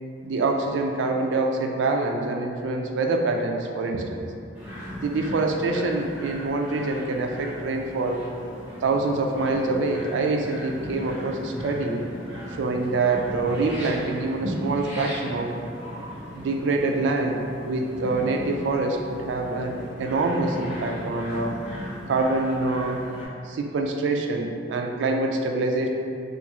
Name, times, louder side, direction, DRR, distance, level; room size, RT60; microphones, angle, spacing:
voice 1, 0.2-4.2 5.0-8.2 8.8-12.0 12.6-15.5 16.3-21.6 22.1-23.0 23.4-25.9, right 3 dB, 65° right, 2 dB, 0.3 m, -25 dB
sound 1, 4.5-23.3, equal, 10° right, 0.7 m, -37 dB
2.7 x 2.5 x 2.9 m, 2.4 s
head